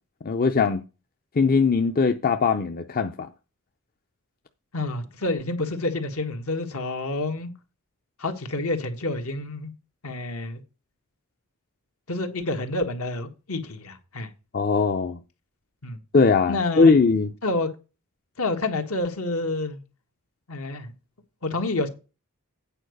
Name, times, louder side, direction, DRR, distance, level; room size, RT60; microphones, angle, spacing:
voice 1, 0.2-0.8 1.4-3.3 14.5-15.2 16.1-17.3, left 4 dB, 40° left, 0.6 m, -20 dB
voice 2, 4.7-7.5 8.2-9.7 10.0-10.6 12.1-14.3 15.8-16.0 16.5-16.9 17.4-17.7 18.4-19.8 20.5-20.9 21.4-21.9, left 2 dB, 70° left, 1.5 m, -28 dB
8.9 x 4.7 x 6.4 m
head